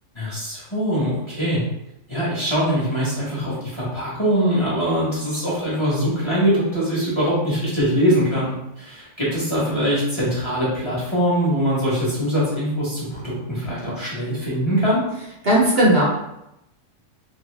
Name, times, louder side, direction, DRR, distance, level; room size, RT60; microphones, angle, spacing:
voice 1, 0.1-1.6 2.1-15.0, equal, 25° left, -8 dB, 1.1 m, -22 dB
voice 2, 15.4-16.0, right 1 dB, 55° right, -4 dB, 1.0 m, -16 dB
2.8 x 2.7 x 3.2 m, 0.87 s
omnidirectional pair, 1.3 m